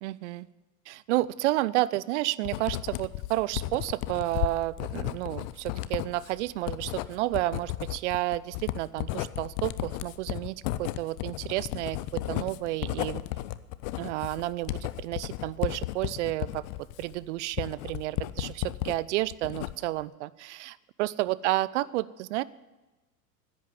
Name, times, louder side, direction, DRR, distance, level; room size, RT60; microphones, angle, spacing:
voice 1, 0.0-0.5 0.9-13.2 14.0-16.6 17.0-22.4, right 17 dB, 50° right, 19 dB, 0.6 m, -31 dB
Writing, 2.4-19.0 19.3-20.0, left 16 dB, 30° left, 0.4 m, -34 dB
10.5 x 8.7 x 9.4 m, 1.1 s
hypercardioid pair, 95°, 48 cm